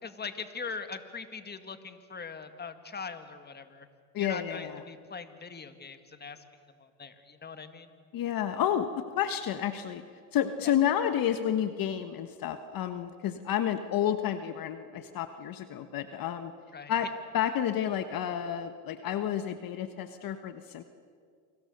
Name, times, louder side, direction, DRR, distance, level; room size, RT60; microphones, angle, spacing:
voice 1, 0.0-3.9 4.2-6.4 6.8-7.9 16.7-16.9, left 5 dB, 20° left, 9 dB, 2.0 m, -41 dB
voice 2, 4.1-4.8 8.1-10.0 10.3-16.5 16.9-17.1 17.3-20.8, left 10 dB, 50° left, 9 dB, 1.4 m, -30 dB
28.5 x 25.0 x 6.7 m, 2.1 s
supercardioid pair, 105°, 43 cm